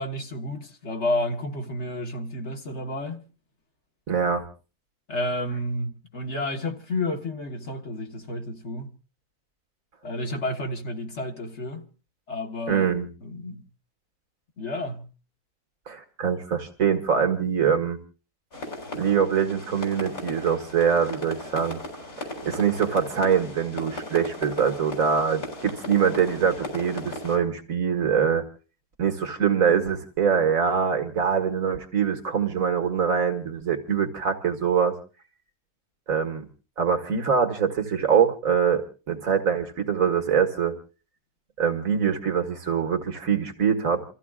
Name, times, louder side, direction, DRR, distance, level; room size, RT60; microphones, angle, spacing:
voice 1, 0.0-3.2 5.1-8.9 10.0-11.8 12.3-12.9 13.2-13.6 14.6-15.1, left 1 dB, 50° left, 1.8 m, -31 dB
voice 2, 4.1-4.4 12.7-13.1 15.9-18.0 18.9-21.8 22.2-28.4 29.0-34.9 36.1-36.5 36.8-40.7 41.6-44.0, right 7 dB, 65° right, 2.2 m, -24 dB
sound 1, 18.5-27.4, left 2 dB, 75° left, 4.2 m, -37 dB
29.0 x 14.5 x 2.4 m
omnidirectional pair, 1.5 m